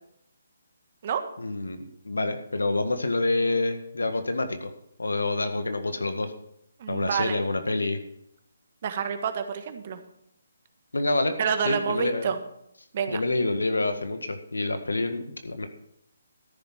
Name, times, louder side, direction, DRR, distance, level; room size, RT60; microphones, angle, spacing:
voice 1, 1.4-4.7 5.0-6.3 6.9-8.0 10.9-11.3 11.6-12.3 13.1-15.7, left 2 dB, 90° left, 7 dB, 1.8 m, -27 dB
voice 2, 6.8-7.4 8.8-10.0 11.4-12.4 12.9-13.2, right 7 dB, 40° right, 8 dB, 1.5 m, -28 dB
13.5 x 10.5 x 4.5 m, 0.76 s
hypercardioid pair, 155°, 0 cm